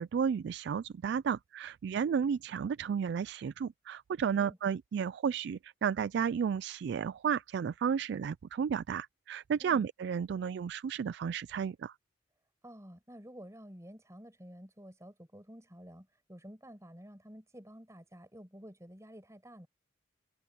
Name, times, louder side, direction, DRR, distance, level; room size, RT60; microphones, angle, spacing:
voice 1, 0.0-11.9, right 7 dB, 65° right, 0.3 m, -33 dB
voice 2, 12.6-19.7, equal, 15° right, 6.8 m, -51 dB
head